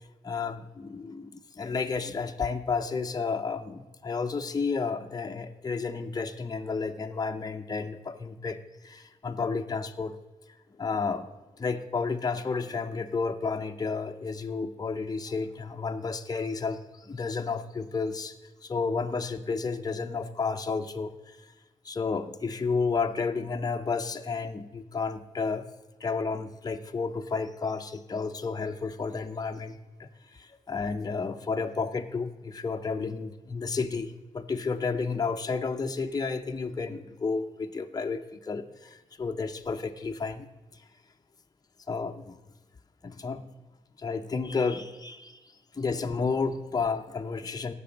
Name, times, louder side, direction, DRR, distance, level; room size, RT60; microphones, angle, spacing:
voice 1, 0.2-8.6 8.8-10.2 10.8-11.3 11.6-18.4 18.6-21.4 21.8-25.6 26.0-40.5 41.9-42.4 43.0-43.4 44.0-47.7, left 4 dB, 30° left, 6 dB, 0.7 m, -31 dB
17.0 x 6.8 x 5.1 m, 1.2 s
wide cardioid pair, 125°, 13 cm